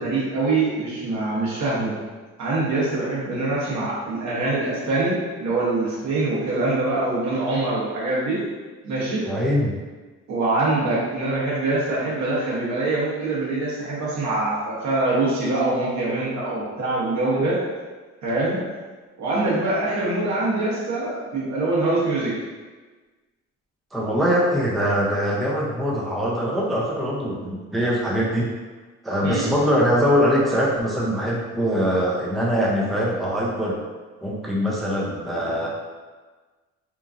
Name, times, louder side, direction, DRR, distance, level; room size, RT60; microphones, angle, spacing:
voice 1, 0.0-1.9 2.4-8.4 8.8-9.2 10.3-17.6 18.2-18.6 19.2-22.3 29.2-29.5, right 2 dB, 70° right, -7 dB, 1.1 m, -24 dB
voice 2, 9.3-9.7 23.9-28.5 29.0-33.8 34.2-35.7, equal, ahead, -4 dB, 0.4 m, -22 dB
2.9 x 2.4 x 2.4 m, 1.3 s
cardioid pair, 90°, 30 cm